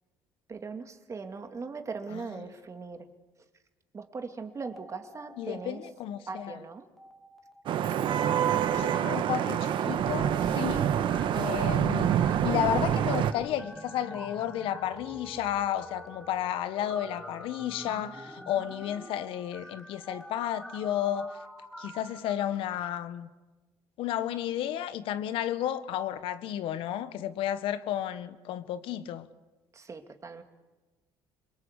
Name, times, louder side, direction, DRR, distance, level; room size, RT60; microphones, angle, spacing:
voice 1, 0.5-3.1 3.9-5.9 6.3-6.9 29.7-30.4, right 4 dB, 35° right, 2.5 m, -40 dB
sound 1, 4.5-5.9 6.1-6.4 7.0-23.0, equal, ahead, 2.9 m, -47 dB
voice 2, 5.4-6.6 8.7-10.9 11.3-21.3 21.8-23.3 24.0-29.3, left 11 dB, 70° left, 1.3 m, -32 dB
Vehicle horn car horn honking / Traffic noise roadway noise, 7.7-13.3, right 9 dB, 60° right, 1.3 m, -26 dB
25.5 x 22.5 x 8.4 m
supercardioid pair, 85°, 9 cm